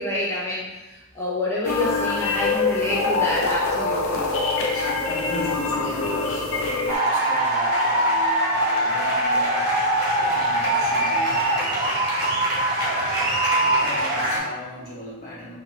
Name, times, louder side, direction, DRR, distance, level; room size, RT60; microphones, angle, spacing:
voice 1, 0.0-4.3, left 1 dB, 10° left, -6 dB, 0.6 m, -27 dB
sound 1, 1.6-7.0, left 3 dB, 60° left, 0.4 m, -24 dB
voice 2, 4.6-9.6 10.2-11.7 13.4-15.6, equal, 40° left, -8 dB, 1.1 m, -38 dB
sound 2, 6.9-14.4, right 1 dB, 45° right, 1.0 m, -22 dB
3.0 x 2.5 x 2.9 m, 1.1 s
head